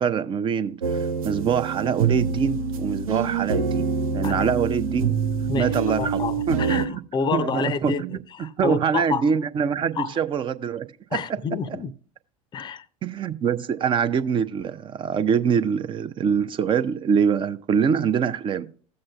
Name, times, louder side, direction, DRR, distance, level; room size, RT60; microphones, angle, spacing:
voice 1, 0.0-5.2 5.6-6.2 6.5-6.9 7.3-8.1 8.6-10.9 13.0-18.7, right 7 dB, 25° right, 0.6 m, -24 dB
sound 1, 0.8-6.9, right 5 dB, 75° right, 0.6 m, -26 dB
voice 2, 5.5-9.3 10.0-10.1 11.1-11.9 12.5-12.9, left 5 dB, 25° left, 0.6 m, -29 dB
16.0 x 7.6 x 2.3 m
figure-of-eight pair, 80°, 19 cm